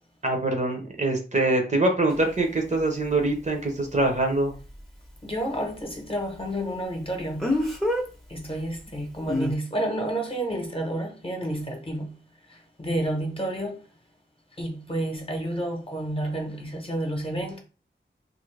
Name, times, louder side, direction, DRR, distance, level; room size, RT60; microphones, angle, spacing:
voice 1, 0.2-4.5, right 2 dB, 35° right, 0.8 m, -24 dB
Speech, 2.1-2.2 7.4-8.0 9.3-9.5, left 1 dB, ahead, 0.8 m, -25 dB
voice 2, 5.2-7.6 8.3-12.1 12.5-13.8 14.6-17.6, right 1 dB, 25° left, 0.9 m, -30 dB
2.7 x 2.6 x 3.2 m
wide cardioid pair, 65°, 20 cm